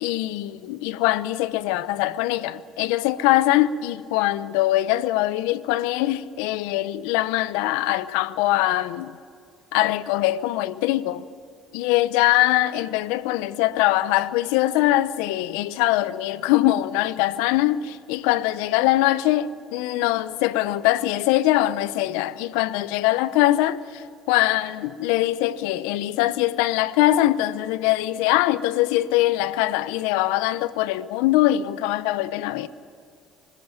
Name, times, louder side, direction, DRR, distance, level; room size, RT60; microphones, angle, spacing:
voice 1, 0.0-9.2 9.7-11.2 11.7-32.7, left 15 dB, 85° left, 0.8 m, -22 dB
25.5 x 15.5 x 9.1 m
supercardioid pair, 75°, 0 cm